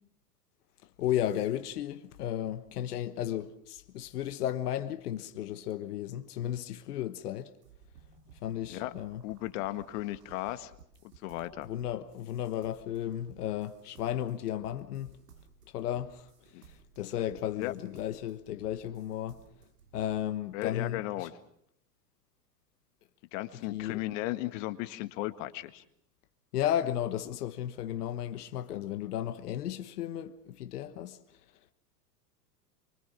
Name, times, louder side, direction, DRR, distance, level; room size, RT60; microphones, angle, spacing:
voice 1, 1.0-7.5 8.4-9.2 11.6-15.2 15.7-16.3 16.6-19.4 19.9-21.3 23.7-24.0 26.5-31.2, left 11 dB, 65° left, 1.3 m, -34 dB
sound 1, 7.6-20.2, right 7 dB, 70° right, 3.4 m, -58 dB
voice 2, 9.2-10.7 11.2-11.7 16.5-16.6 17.6-17.7 20.5-21.3 23.3-25.8, left 16 dB, 50° left, 1.8 m, -35 dB
24.5 x 24.0 x 6.1 m
hypercardioid pair, 100°, 49 cm